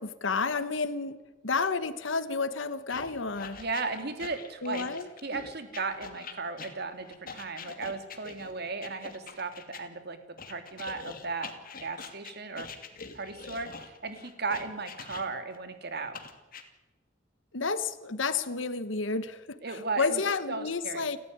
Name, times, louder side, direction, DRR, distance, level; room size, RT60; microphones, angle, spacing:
voice 1, 0.0-3.6 4.6-5.1 17.5-21.2, left 4 dB, 85° left, 13 dB, 1.2 m, -31 dB
sound 1, 2.9-9.8 10.4-15.6 16.1-16.6, left 5 dB, 50° left, 2.6 m, -44 dB
voice 2, 3.6-4.9 5.2-10.2 10.5-11.5 11.8-12.7 13.1-16.2 19.6-20.2 20.5-21.1, right 4 dB, 60° right, 8 dB, 2.9 m, -35 dB
29.5 x 14.0 x 9.5 m, 1.2 s
head